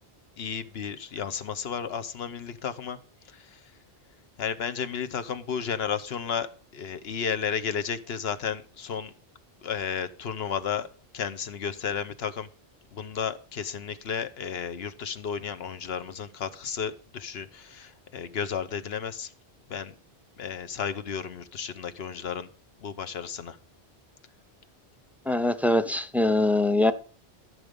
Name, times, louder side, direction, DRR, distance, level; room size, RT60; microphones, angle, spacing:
voice 1, 0.4-3.0 3.3-3.6 4.4-6.5 6.7-9.1 9.6-10.9 11.1-12.5 12.9-19.3 19.7-19.9 20.4-22.5 22.8-23.6, left 7 dB, 70° left, 1.1 m, -33 dB
voice 2, 25.3-26.9, left 2 dB, ahead, 0.3 m, -23 dB
14.5 x 6.4 x 5.2 m
omnidirectional pair, 1.1 m